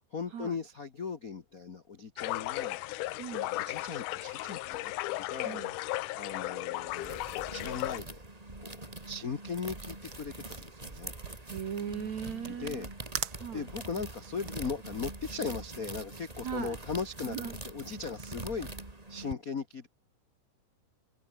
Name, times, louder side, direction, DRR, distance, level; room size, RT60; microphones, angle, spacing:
voice 1, 0.1-2.8 3.5-4.9 5.3-7.2 7.5-8.2 8.6-11.1 12.5-12.9 13.5-17.4 17.6-19.9, left 5 dB, 50° left, 1.0 m, -38 dB
sound 1, 2.2-8.0, left 18 dB, 75° left, 2.1 m, -35 dB
voice 2, 3.2-3.6 5.4-5.8 11.5-12.9 13.4-13.7 16.4-16.8 17.3-17.6, right 8 dB, 60° right, 3.2 m, -38 dB
sound 2, 6.7-19.3, right 2 dB, 10° right, 2.4 m, -44 dB
sound 3, 10.1-16.6, right 11 dB, 80° right, 1.1 m, -44 dB
omnidirectional pair, 3.8 m